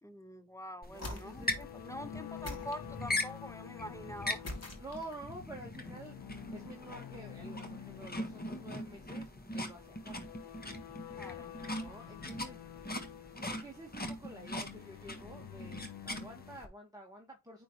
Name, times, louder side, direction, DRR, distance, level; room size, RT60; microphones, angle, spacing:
voice 1, 0.0-4.6 11.1-11.5, equal, 10° left, 0.8 m, -45 dB
sound 1, 0.8-16.7, left 1 dB, 25° left, 1.6 m, -41 dB
sound 2, 0.9-16.6, left 12 dB, 75° left, 0.5 m, -50 dB
sound 3, 0.9-1.7 2.4-3.4 4.4-5.3, left 1 dB, 40° left, 2.5 m, -44 dB
voice 2, 0.9-1.5 4.8-10.2 11.8-12.6 13.0-17.6, right 1 dB, 10° right, 1.7 m, -49 dB
9.3 x 3.9 x 3.1 m
cardioid pair, 65°, 39 cm